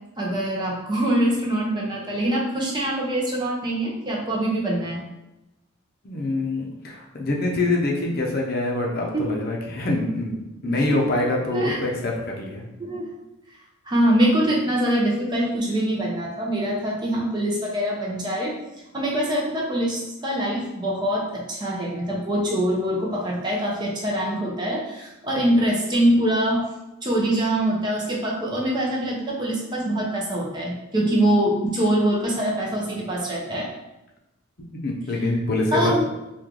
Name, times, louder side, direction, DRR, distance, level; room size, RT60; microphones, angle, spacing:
voice 1, 0.2-5.0 9.1-9.3 10.6-11.0 11.5-11.8 12.8-13.1 13.9-18.5 18.9-26.6 27.0-33.7 35.7-36.0, right 1 dB, 20° right, -3 dB, 0.5 m, -24 dB
voice 2, 6.0-10.4 10.6-12.6 34.7-36.0, left 2 dB, 45° left, -1 dB, 0.6 m, -25 dB
3.1 x 2.3 x 3.7 m, 0.95 s
head